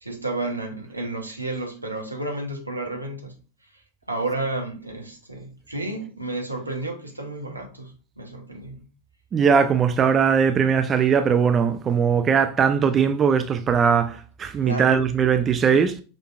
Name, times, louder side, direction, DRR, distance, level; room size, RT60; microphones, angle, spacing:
voice 1, 0.0-3.3 4.1-8.8 14.6-14.9, right 2 dB, 85° right, 1.0 m, -31 dB
voice 2, 9.3-16.0, right 6 dB, 25° right, 0.3 m, -20 dB
6.1 x 3.3 x 2.4 m
figure-of-eight pair, 90°, 0 cm